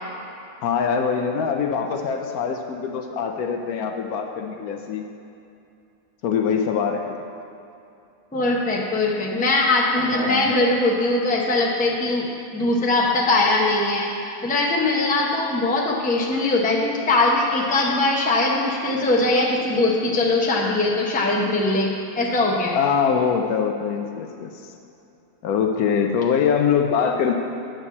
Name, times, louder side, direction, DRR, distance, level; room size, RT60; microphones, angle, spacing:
voice 1, 0.6-5.0 6.2-7.2 10.1-10.5 22.7-24.7 25.4-27.3, left 6 dB, 70° left, 4 dB, 1.0 m, -23 dB
voice 2, 8.3-22.8, left 2 dB, 10° left, -3 dB, 0.6 m, -21 dB
8.8 x 4.6 x 7.0 m, 2.7 s
omnidirectional pair, 1.7 m